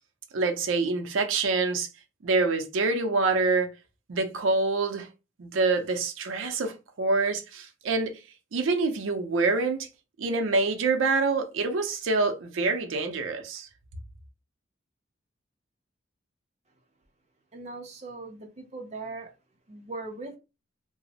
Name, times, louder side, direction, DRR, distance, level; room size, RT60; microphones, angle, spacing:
voice 1, 0.3-1.9 2.2-3.7 4.1-5.1 5.4-8.2 8.5-9.9 10.2-13.7, right 3 dB, 85° right, 0.5 m, -26 dB
voice 2, 17.5-19.3 19.7-20.4, right 3 dB, 35° right, 0.5 m, -39 dB
2.9 x 2.0 x 2.7 m
head